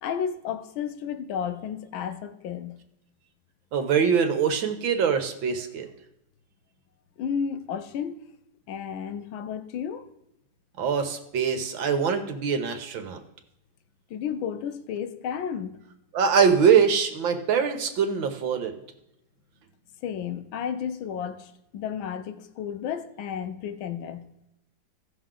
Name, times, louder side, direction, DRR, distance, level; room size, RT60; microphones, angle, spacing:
voice 1, 0.0-2.8 7.2-8.2 8.7-10.1 14.1-15.8 20.0-24.3, left 7 dB, 85° left, 1.5 m, -32 dB
voice 2, 3.7-5.9 10.8-13.2 16.1-18.7, right 6 dB, 75° right, 1.8 m, -23 dB
16.5 x 6.3 x 3.8 m
omnidirectional pair, 2.1 m